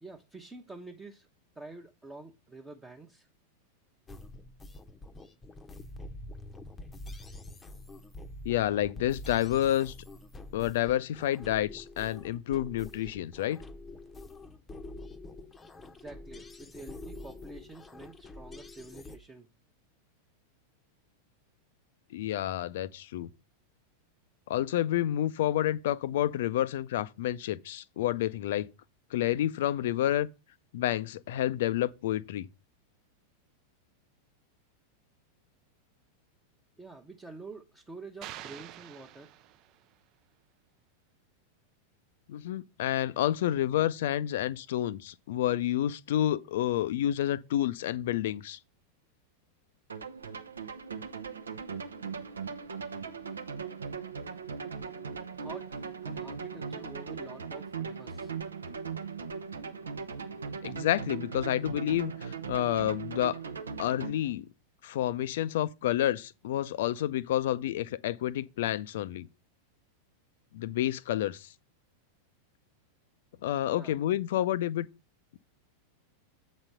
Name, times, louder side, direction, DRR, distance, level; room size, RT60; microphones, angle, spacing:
voice 1, 0.0-1.3 1.5-3.3 15.8-19.5 36.8-39.3 55.3-58.4 73.7-74.0, right 3 dB, 10° right, 0.9 m, -48 dB
sound 1, 4.1-19.2, left 2 dB, 15° left, 0.8 m, -46 dB
voice 2, 8.4-9.9 10.5-13.6 22.1-23.3 24.5-28.7 29.1-30.3 30.7-32.5 42.3-48.6 60.6-63.4 63.8-64.4 64.8-69.3 70.5-71.5 73.4-74.9, left 12 dB, 55° left, 0.5 m, -29 dB
sound 2, 38.2-39.9, right 12 dB, 40° right, 0.5 m, -46 dB
sound 3, 49.9-64.1, right 6 dB, 70° right, 0.7 m, -39 dB
7.8 x 4.2 x 6.6 m
figure-of-eight pair, 90°, 0 cm